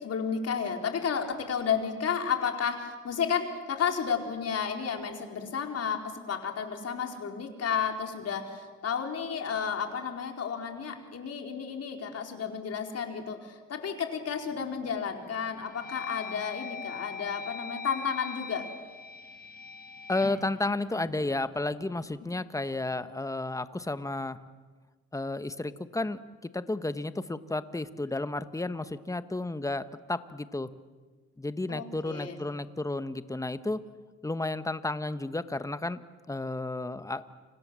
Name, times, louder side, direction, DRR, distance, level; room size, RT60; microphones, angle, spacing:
voice 1, 0.0-18.7 31.7-32.4, left 7 dB, 55° left, 4 dB, 4.4 m, -32 dB
sound 1, 14.5-14.9 15.4-21.6, left 5 dB, 30° left, 2.2 m, -42 dB
voice 2, 20.1-24.4 25.1-30.7 31.4-33.8 34.2-36.0 36.3-37.2, left 2 dB, 10° left, 12 dB, 1.3 m, -32 dB
30.0 x 25.5 x 7.6 m, 1.4 s
cardioid pair, 90°, 30 cm